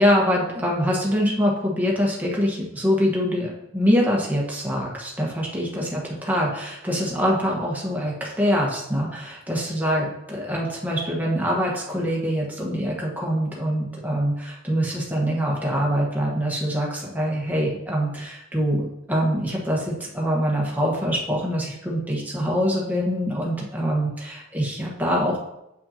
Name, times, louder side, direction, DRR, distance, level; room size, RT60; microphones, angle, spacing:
voice 1, 0.0-25.4, equal, 10° right, -3 dB, 1.4 m, -24 dB
8.3 x 5.3 x 2.9 m, 0.87 s
head